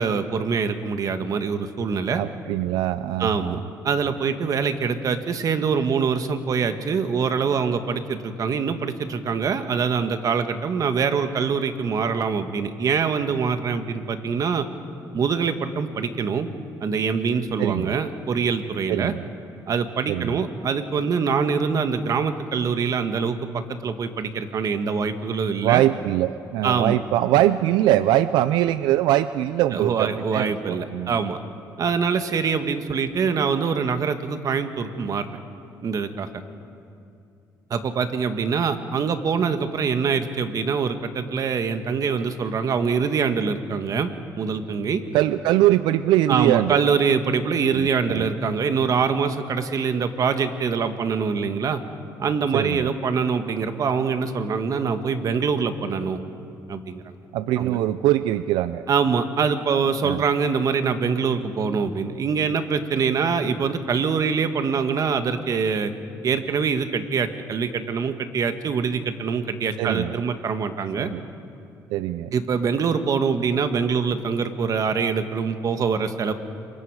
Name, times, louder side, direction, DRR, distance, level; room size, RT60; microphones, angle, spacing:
voice 1, 0.0-2.2 3.2-14.7 15.1-16.5 16.8-19.1 19.7-25.8 26.6-27.0 29.7-31.4 31.8-35.3 35.8-36.3 37.7-45.0 46.3-51.8 52.2-56.2 56.7-57.0 57.6-57.8 58.9-65.9 66.2-71.1 72.3-76.3, right 5 dB, 50° right, 8 dB, 1.5 m, -24 dB
voice 2, 2.2-3.6 17.6-17.9 18.9-19.2 20.1-20.4 25.6-31.1 45.1-46.8 47.7-48.3 52.5-52.9 57.3-58.9 60.0-60.2 69.8-70.1 71.0-71.2 71.9-72.3, right 14 dB, 90° right, 14 dB, 0.4 m, -22 dB
27.5 x 24.0 x 4.8 m, 2.5 s
cardioid pair, 95°, 8 cm